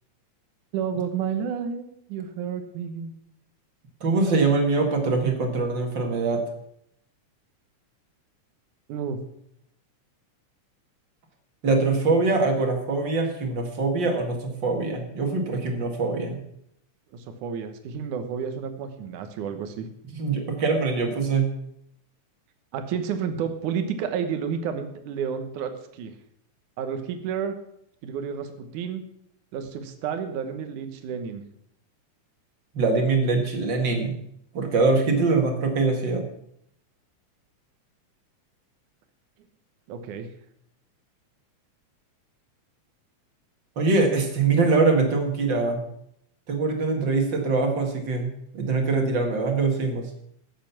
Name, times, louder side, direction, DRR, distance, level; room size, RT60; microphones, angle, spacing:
voice 1, 0.7-1.8 2.1-3.1 8.9-9.2 17.1-19.9 22.7-26.1 26.8-27.6 28.0-29.0 29.5-31.4 39.9-40.3, right 7 dB, 80° right, 7 dB, 2.6 m, -31 dB
voice 2, 4.0-6.4 11.6-16.4 20.1-21.5 32.7-34.2 34.5-36.3 43.8-45.8 46.5-50.1, right 3 dB, 40° right, 3 dB, 2.3 m, -23 dB
15.0 x 7.6 x 5.8 m, 0.73 s
omnidirectional pair, 3.5 m